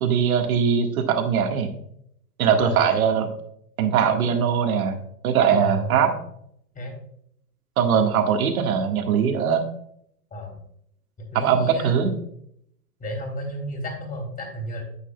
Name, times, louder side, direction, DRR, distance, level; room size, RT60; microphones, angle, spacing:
voice 1, 0.0-1.7 2.4-3.3 3.8-5.0 5.2-6.1 7.8-9.6 11.3-12.1, right 7 dB, 60° right, 5 dB, 1.8 m, -21 dB
voice 2, 5.5-6.1 6.7-7.0 10.3-10.6 11.3-12.1 13.0-14.8, equal, 15° left, 2 dB, 3.0 m, -33 dB
10.0 x 8.4 x 2.3 m, 0.70 s
hypercardioid pair, 105°, 48 cm